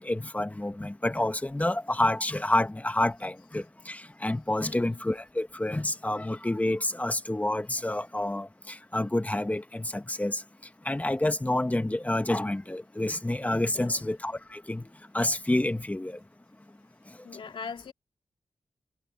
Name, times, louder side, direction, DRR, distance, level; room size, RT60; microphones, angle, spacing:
voice 1, 0.0-10.4 10.8-14.8 15.1-16.2, left 1 dB, 15° left, 1.5 m, -28 dB
voice 2, 4.6-5.0 13.7-14.0 17.2-17.9, left 5 dB, 80° left, 2.6 m, -41 dB
cardioid pair, 70°, 9 cm